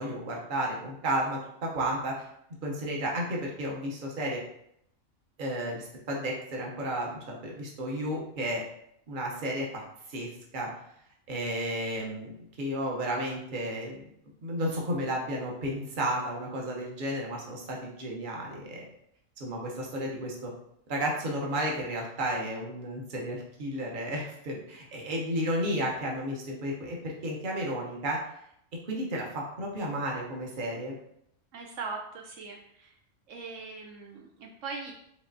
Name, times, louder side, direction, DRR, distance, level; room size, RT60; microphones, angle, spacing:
voice 1, 0.0-2.3 2.6-4.4 5.4-8.6 9.1-9.8 10.1-10.7 11.3-14.0 14.4-18.8 19.4-20.5 20.9-28.2 28.8-30.9, right 1 dB, 45° right, -1 dB, 1.0 m, -32 dB
voice 2, 31.5-32.9 33.3-34.9, right 4 dB, 75° right, 1 dB, 0.9 m, -40 dB
5.0 x 3.0 x 2.6 m, 0.74 s
omnidirectional pair, 1.3 m